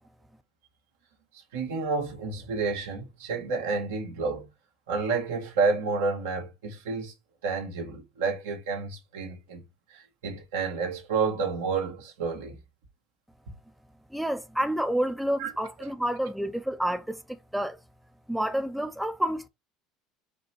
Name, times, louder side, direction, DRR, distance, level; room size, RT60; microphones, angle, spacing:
voice 1, 1.5-4.5 4.9-7.1 7.4-9.6 9.9-12.6 15.4-15.5 15.8-15.9, right 4 dB, 85° right, 1.5 m, -30 dB
voice 2, 14.1-17.8 18.3-19.5, equal, 5° right, 0.6 m, -29 dB
5.1 x 2.2 x 4.4 m
supercardioid pair, 90°, 0 cm